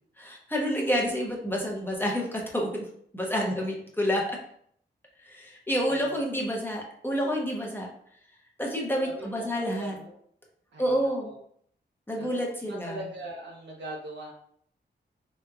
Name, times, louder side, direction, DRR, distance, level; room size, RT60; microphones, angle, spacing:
voice 1, 0.2-2.8 3.1-4.4 5.2-7.9 8.6-9.9 10.8-11.3 12.1-13.0, equal, 10° left, -1 dB, 0.7 m, -29 dB
voice 2, 9.0-10.2 10.7-11.4 12.2-14.3, right 1 dB, 70° right, -1 dB, 0.9 m, -41 dB
3.4 x 3.0 x 2.3 m, 0.65 s
wide cardioid pair, 105°, 19 cm